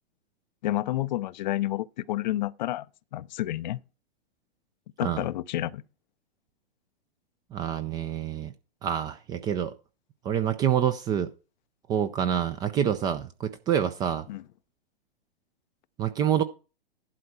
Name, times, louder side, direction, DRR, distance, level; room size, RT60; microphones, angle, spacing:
voice 1, 0.6-2.9 3.1-3.8 5.0-5.8 14.3-14.4, left 15 dB, 45° left, 0.5 m, -29 dB
voice 2, 7.5-8.5 8.8-9.7 10.2-11.3 11.9-14.3 16.0-16.4, right 9 dB, 15° right, 0.4 m, -27 dB
11.5 x 4.2 x 6.1 m
figure-of-eight pair, 115°, 32 cm